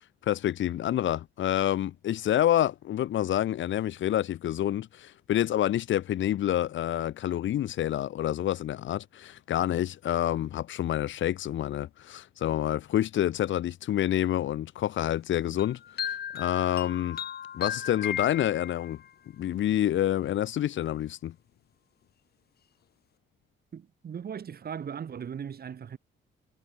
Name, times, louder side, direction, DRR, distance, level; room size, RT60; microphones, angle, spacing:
voice 1, 0.2-17.2 17.5-19.0 19.4-21.3, left 12 dB, 70° left, 2.3 m, -28 dB
sound 1, 15.6-19.1, left 8 dB, 55° left, 1.6 m, -36 dB
voice 2, 23.7-26.0, right 7 dB, 50° right, 3.9 m, -38 dB
cardioid pair, 90°, 20 cm